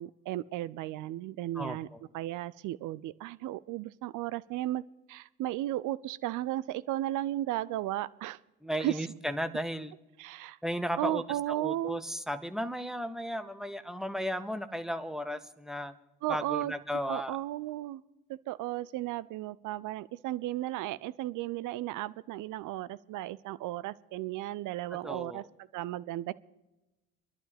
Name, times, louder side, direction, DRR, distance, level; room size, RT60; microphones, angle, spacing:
voice 1, 0.0-1.9 2.1-4.8 5.1-8.4 8.8-9.0 10.2-10.6 11.0-12.0 16.2-16.7 17.1-18.0 18.3-25.4 25.7-26.3, right 15 dB, 50° right, 19 dB, 0.6 m, -34 dB
voice 2, 1.5-2.0 8.6-9.9 10.6-15.9 16.3-17.4 25.0-25.4, equal, ahead, 11 dB, 0.9 m, -35 dB
24.5 x 11.5 x 3.4 m, 1.0 s
hypercardioid pair, 55°, 39 cm